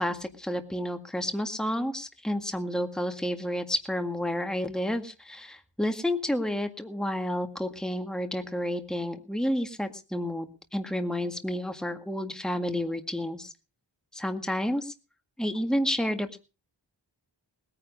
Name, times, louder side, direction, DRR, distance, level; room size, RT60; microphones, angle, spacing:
voice 1, 0.0-13.5 14.1-14.9 15.4-16.4, equal, ahead, 6 dB, 1.9 m, -30 dB
20.0 x 9.9 x 5.4 m, 0.34 s
wide cardioid pair, 45°, 45 cm